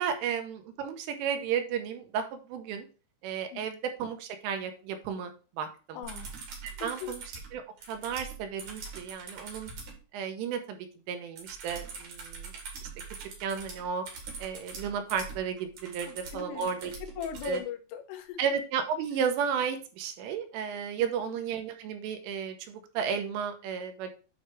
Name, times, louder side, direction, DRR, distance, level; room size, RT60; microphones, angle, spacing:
voice 1, 0.0-2.9 3.2-5.3 5.6-6.0 6.8-7.2 7.5-7.6 7.9-9.7 10.1-10.8 11.1-12.5 13.2-14.0 14.4-16.9 17.4-17.6 18.4-24.1, right 7 dB, 85° right, 6 dB, 3.3 m, -33 dB
voice 2, 5.9-6.3 6.8-7.1 7.8-7.9 16.1-18.4 21.0-21.4, left 9 dB, 85° left, 5 dB, 3.4 m, -40 dB
sound 1, 6.0-10.0 11.4-17.6 19.3-19.4, right 4 dB, 60° right, 2.0 m, -43 dB
9.2 x 3.2 x 4.6 m, 0.35 s
omnidirectional pair, 5.8 m